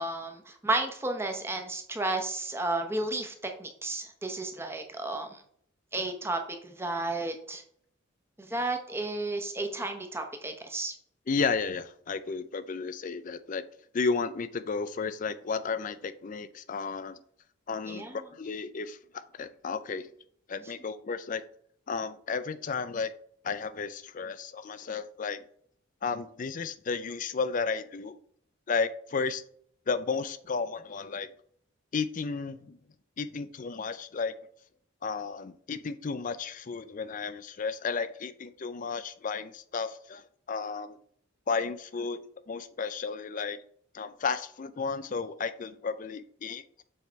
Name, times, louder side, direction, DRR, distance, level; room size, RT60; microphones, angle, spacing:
voice 1, 0.0-5.4 5.9-7.6 8.4-10.9 17.9-18.2, right 2 dB, 10° right, 4 dB, 0.7 m, -32 dB
voice 2, 11.3-13.6 13.9-17.2 17.7-20.1 20.5-21.4 21.9-23.1 23.4-25.4 26.0-28.2 28.7-29.4 29.9-31.3 31.9-32.8 33.2-34.4 35.0-40.2 40.5-41.0 41.5-43.6 43.9-46.8, left 5 dB, 40° left, 13 dB, 0.4 m, -33 dB
7.3 x 3.3 x 4.5 m, 0.63 s
head